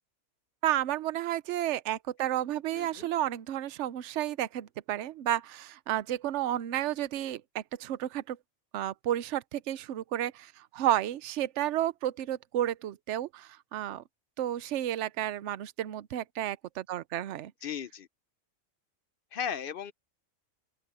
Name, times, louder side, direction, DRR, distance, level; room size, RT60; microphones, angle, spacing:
voice 1, 0.6-8.4 8.7-14.0 14.4-17.5, right 12 dB, 65° right, 0.9 m, -32 dB
voice 2, 2.7-3.1 17.6-18.1 19.3-19.9, left 8 dB, 60° left, 0.6 m, -36 dB
open air
omnidirectional pair, 1.4 m